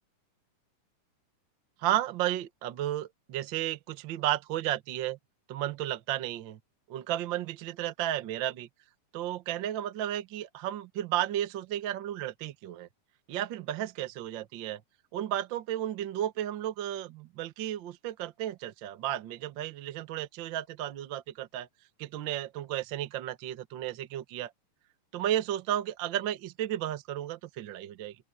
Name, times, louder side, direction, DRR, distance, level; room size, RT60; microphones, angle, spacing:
voice 1, 1.8-5.2 5.5-6.6 6.9-8.7 9.1-12.9 13.3-14.8 15.1-21.7 22.0-24.5 25.1-28.2, right 12 dB, 85° right, 1.0 m, -33 dB
open air
omnidirectional pair, 3.8 m